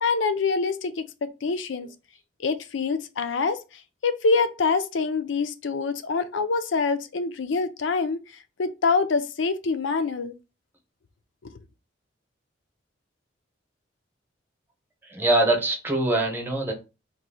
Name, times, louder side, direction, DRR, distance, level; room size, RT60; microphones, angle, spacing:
voice 1, 0.0-1.0 1.4-1.9 2.4-3.6 4.0-8.2 8.6-10.3, left 4 dB, 70° left, 0.5 m, -25 dB
voice 2, 15.0-16.7, right 1 dB, 10° right, 0.9 m, -23 dB
3.0 x 2.6 x 4.0 m
head